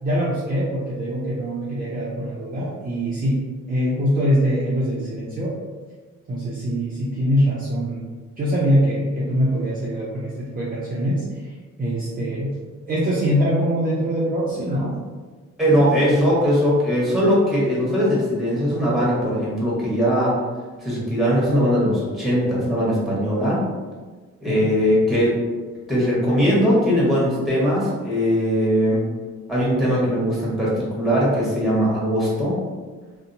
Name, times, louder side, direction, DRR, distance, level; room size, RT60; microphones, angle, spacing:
voice 1, 0.0-5.6 6.3-8.0 8.4-12.5 12.9-15.0 24.4-24.7, equal, 30° right, -6 dB, 0.5 m, -23 dB
voice 2, 15.6-20.4 20.8-23.6 24.4-25.3 25.9-29.0 29.5-32.6, equal, ahead, -7 dB, 1.3 m, -20 dB
2.7 x 2.1 x 2.6 m, 1.4 s
cardioid pair, 90°, 30 cm